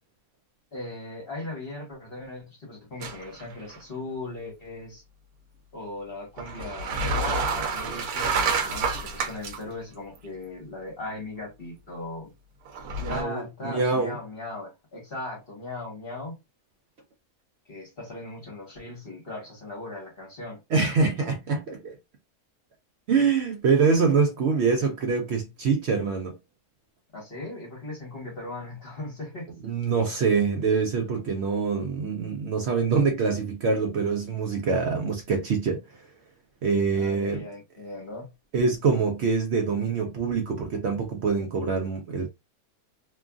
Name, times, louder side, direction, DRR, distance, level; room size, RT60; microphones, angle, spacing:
voice 1, 0.7-5.0 5.7-12.3 13.1-16.4 17.6-20.6 27.1-29.5 37.0-38.3, left 2 dB, 40° left, 1.4 m, -38 dB
sound 1, 3.0-3.4 3.7-3.8 6.4-9.6 10.2-10.3 12.7-13.2, right 4 dB, 85° right, 1.2 m, -28 dB
voice 2, 13.0-14.2 20.7-21.9 23.1-26.3 29.6-35.8 36.6-37.4 38.5-42.3, right 5 dB, 60° right, 0.7 m, -25 dB
3.0 x 2.4 x 2.3 m
omnidirectional pair, 1.6 m